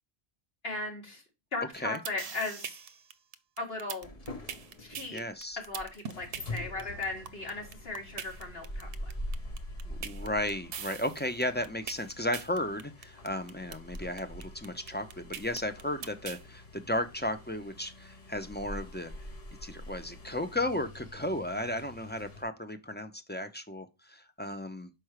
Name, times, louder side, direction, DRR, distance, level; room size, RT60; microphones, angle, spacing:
voice 1, 0.6-1.2 1.5-2.7 3.6-4.1 4.8-5.2 5.6-8.9, left 3 dB, 70° left, 2.3 m, -37 dB
sound 1, 1.7-16.4, right 8 dB, 70° right, 0.8 m, -41 dB
sound 2, 4.0-22.4, left 1 dB, 40° left, 1.0 m, -45 dB
voice 2, 5.1-5.6 9.9-19.1 19.6-24.9, left 1 dB, 10° left, 0.5 m, -34 dB
6.1 x 4.6 x 4.8 m
omnidirectional pair, 1.0 m